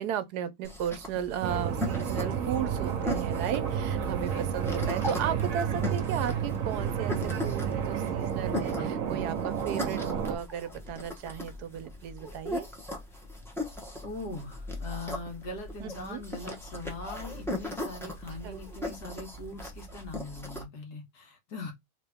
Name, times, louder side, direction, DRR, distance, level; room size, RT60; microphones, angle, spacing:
voice 1, 0.0-12.7 15.8-16.2 18.4-18.6, right 9 dB, 75° right, 1.1 m, -35 dB
sound 1, 0.6-20.6, left 1 dB, ahead, 0.6 m, -39 dB
sound 2, 1.4-10.4, right 7 dB, 60° right, 1.1 m, -31 dB
voice 2, 14.0-21.7, left 2 dB, 70° left, 1.8 m, -41 dB
3.4 x 2.8 x 3.4 m
omnidirectional pair, 1.8 m